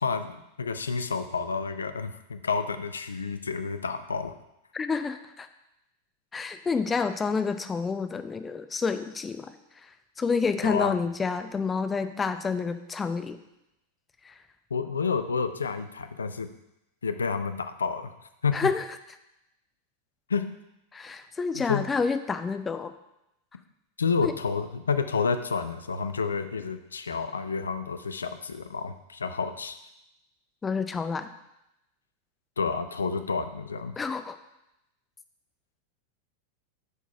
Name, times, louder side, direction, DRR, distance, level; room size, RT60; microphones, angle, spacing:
voice 1, 0.0-4.3 10.6-10.9 14.7-16.5 17.0-18.1 18.4-18.5 20.3-20.4 21.5-21.8 24.0-29.8 32.6-33.9, left 5 dB, 70° left, 10 dB, 0.5 m, -29 dB
voice 2, 4.7-5.5 6.3-9.5 10.2-13.4 14.2-14.3 18.5-18.8 20.9-22.9 24.2-24.3 30.6-31.3 34.0-34.4, left 5 dB, 15° left, 9 dB, 0.6 m, -29 dB
8.1 x 4.7 x 5.6 m, 0.89 s
figure-of-eight pair, 90°, 0 cm